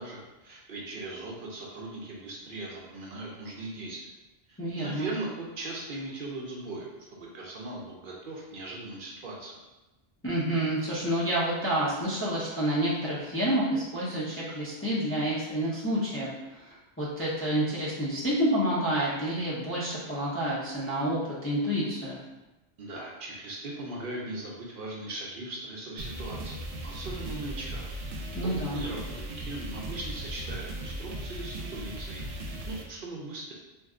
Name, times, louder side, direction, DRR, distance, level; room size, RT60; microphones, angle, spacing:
voice 1, 0.0-4.1 4.5-9.6 22.8-27.9 28.4-33.5, right 2 dB, 60° right, -3 dB, 0.7 m, -39 dB
voice 2, 4.6-5.1 10.2-22.2 28.3-28.8, right 1 dB, 20° left, -8 dB, 0.4 m, -29 dB
sound 1, 26.0-32.8, right 1 dB, 90° right, 0.8 m, -38 dB
2.6 x 2.2 x 3.6 m, 1.0 s
omnidirectional pair, 1.1 m